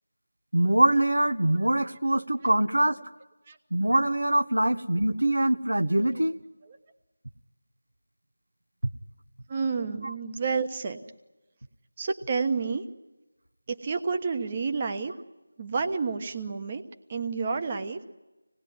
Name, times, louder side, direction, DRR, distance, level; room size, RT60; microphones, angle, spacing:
voice 1, 0.5-3.0 3.7-6.4 10.0-10.1, right 1 dB, 85° right, 8 dB, 1.4 m, -23 dB
voice 2, 9.5-11.0 12.0-12.8 13.7-15.1 15.6-16.8 17.1-18.0, right 4 dB, 25° right, 7 dB, 1.2 m, -30 dB
26.0 x 19.5 x 9.6 m, 1.1 s
figure-of-eight pair, 170°, 0 cm